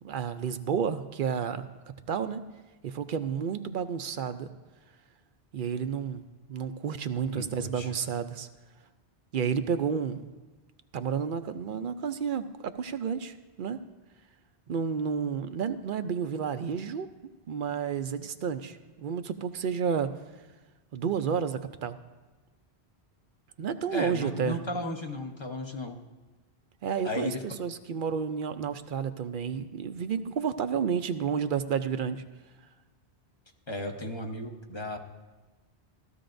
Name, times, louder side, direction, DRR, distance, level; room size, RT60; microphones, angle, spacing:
voice 1, 0.0-1.7 2.1-2.4 2.8-4.5 5.5-8.5 9.3-10.2 10.9-13.8 14.7-17.1 17.5-20.1 20.9-22.0 23.6-24.6 26.8-32.2, right 7 dB, 60° right, 10 dB, 0.6 m, -31 dB
voice 2, 7.3-7.9 23.9-25.9 27.0-27.4 33.7-35.0, left 1 dB, 25° left, 3 dB, 0.9 m, -35 dB
15.5 x 13.5 x 2.6 m, 1.2 s
omnidirectional pair, 1.1 m